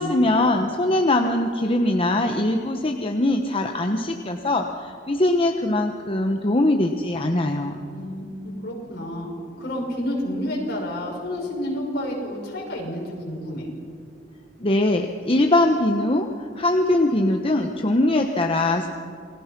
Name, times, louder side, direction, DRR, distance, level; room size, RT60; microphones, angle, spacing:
voice 1, 0.0-7.8 14.6-18.9, left 1 dB, 30° left, 3 dB, 1.1 m, -22 dB
voice 2, 7.9-9.3 9.6-13.7, equal, 60° left, -1 dB, 6.4 m, -30 dB
29.0 x 20.5 x 6.0 m, 2.3 s
head